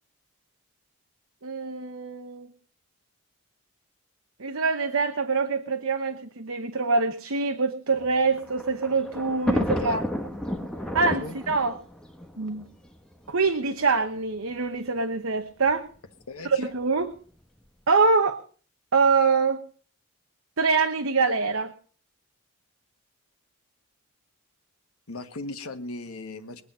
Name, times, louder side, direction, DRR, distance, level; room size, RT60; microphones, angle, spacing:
voice 1, 1.4-2.5 4.4-10.0 10.9-11.7 12.4-12.7 13.3-15.9 16.4-17.1 17.9-18.4 18.9-19.6 20.6-21.7, right 4 dB, 70° right, 8 dB, 1.0 m, -24 dB
Thunder, 8.0-13.3 14.2-14.3 14.5-14.6 15.7-16.0, equal, 5° left, 1.1 m, -31 dB
voice 2, 9.5-10.1 11.2-11.4 16.3-16.7 25.1-26.6, left 2 dB, 80° left, 8 dB, 1.5 m, -38 dB
22.0 x 8.4 x 5.5 m, 0.42 s
head